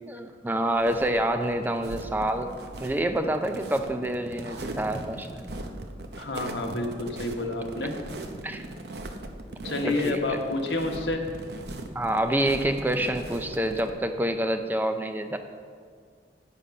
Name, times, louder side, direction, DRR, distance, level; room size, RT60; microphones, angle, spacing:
voice 1, 0.1-2.5 2.8-5.5 8.4-8.6 9.8-10.4 11.9-15.4, right 1 dB, 10° right, 7 dB, 0.4 m, -27 dB
sound 1, 0.8-13.9, right 1 dB, 65° right, 0.8 m, -39 dB
voice 2, 6.2-7.9 9.6-11.2, left 2 dB, 90° left, 2 dB, 1.2 m, -29 dB
9.9 x 7.2 x 5.3 m, 2.1 s
head